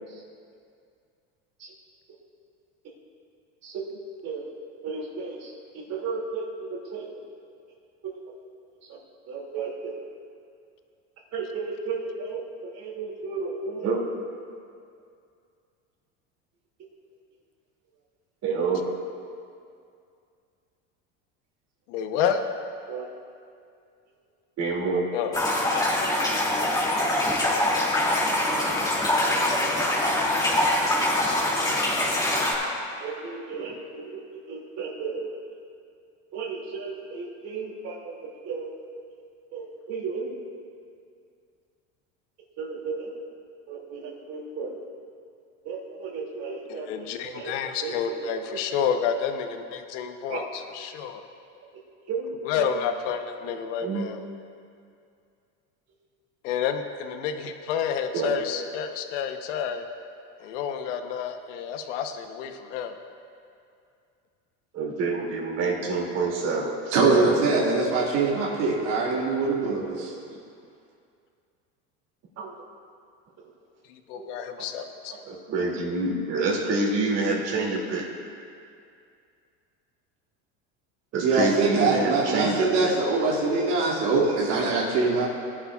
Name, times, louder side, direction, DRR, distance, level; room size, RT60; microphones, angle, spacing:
voice 1, 4.8-7.2 8.0-8.3 8.9-9.0 9.3-10.0 11.3-14.0 18.4-18.9 22.9-23.1 24.6-25.1 33.0-35.3 36.3-38.7 39.5-40.4 42.6-43.2 43.7-44.8 45.6-47.6 47.8-48.9 50.3-50.5 51.7-51.8 52.1-52.8 53.4-54.1 58.1-58.4 64.7-67.5 72.4-72.5 74.1-74.3 75.1-78.1 81.1-82.9, right 3 dB, 45° right, -2 dB, 2.6 m, -30 dB
voice 2, 21.9-22.4 25.1-25.4 46.7-51.2 52.4-54.2 56.4-59.8 60.4-62.9 73.9-75.2, left 8 dB, 80° left, 7 dB, 1.0 m, -30 dB
sound 1, 25.3-32.5, left 1 dB, 10° left, 2.6 m, -24 dB
voice 3, 66.9-70.1 81.2-85.3, right 3 dB, 90° right, -5 dB, 2.3 m, -23 dB
17.5 x 11.0 x 2.4 m, 2.4 s
supercardioid pair, 125°, 35 cm